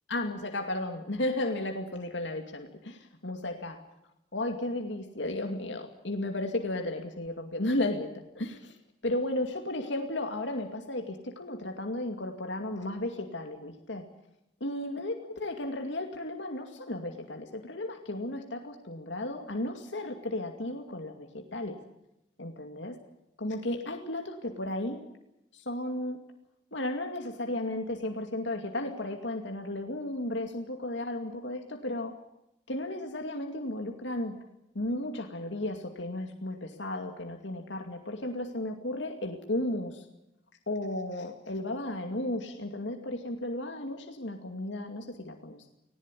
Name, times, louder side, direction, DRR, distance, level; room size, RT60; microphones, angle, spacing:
voice 1, 0.1-3.8 4.3-8.7 9.0-14.1 14.6-21.8 22.4-23.0 23.4-25.0 25.5-26.2 26.7-32.2 32.7-34.4 34.7-40.1 40.7-45.7, left 1 dB, 75° left, 4 dB, 2.4 m, -34 dB
19.5 x 18.5 x 9.9 m, 0.84 s
head